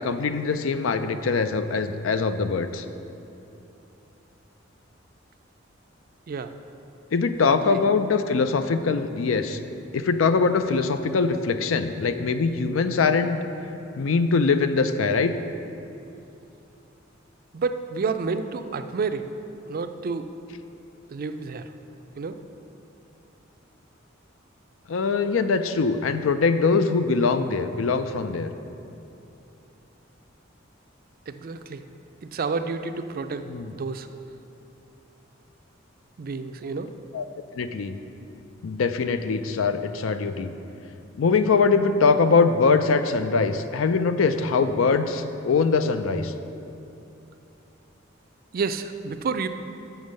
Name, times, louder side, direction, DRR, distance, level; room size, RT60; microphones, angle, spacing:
voice 1, 0.0-2.8 7.1-9.6 9.9-13.3 14.0-15.3 24.9-28.5 33.5-33.7 37.1-37.3 37.5-38.0 38.6-40.5 41.2-46.3, left 4 dB, 80° left, 10 dB, 0.5 m, -22 dB
voice 2, 7.4-7.8 17.5-19.2 19.7-20.3 21.1-21.7 22.2-22.4 31.3-31.8 32.2-34.1 36.2-36.9 48.5-49.5, right 4 dB, 50° right, 9 dB, 0.4 m, -30 dB
7.1 x 6.2 x 6.4 m, 2.8 s
head